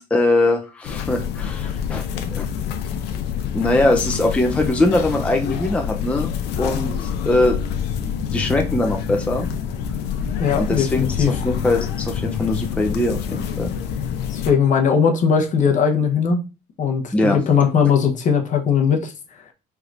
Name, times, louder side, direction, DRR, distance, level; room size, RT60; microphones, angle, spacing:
voice 1, 0.0-2.5 3.5-6.3 6.6-9.5 10.5-13.7 17.1-17.4, left 2 dB, 5° left, 0.5 m, -22 dB
sound 1, 0.8-14.5, left 8 dB, 80° left, 0.6 m, -27 dB
voice 2, 10.3-11.3 14.3-16.4 16.8-19.1, left 6 dB, 50° left, 0.8 m, -19 dB
4.7 x 3.3 x 2.5 m
cardioid pair, 110°, 17 cm